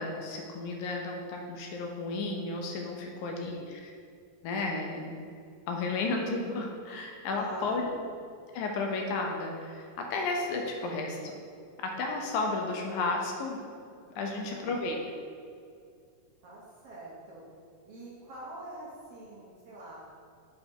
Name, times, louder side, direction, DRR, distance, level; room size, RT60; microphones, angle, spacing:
voice 1, 0.0-3.9 4.4-5.3 5.7-7.9 8.5-11.3 11.8-13.6 14.1-15.0, left 3 dB, 75° left, 1 dB, 1.9 m, -33 dB
voice 2, 3.1-3.7 7.3-8.0 14.3-15.0 16.4-17.4 17.8-20.2, right 1 dB, 65° right, -6 dB, 1.6 m, -45 dB
7.0 x 3.3 x 5.3 m, 2.3 s
omnidirectional pair, 4.0 m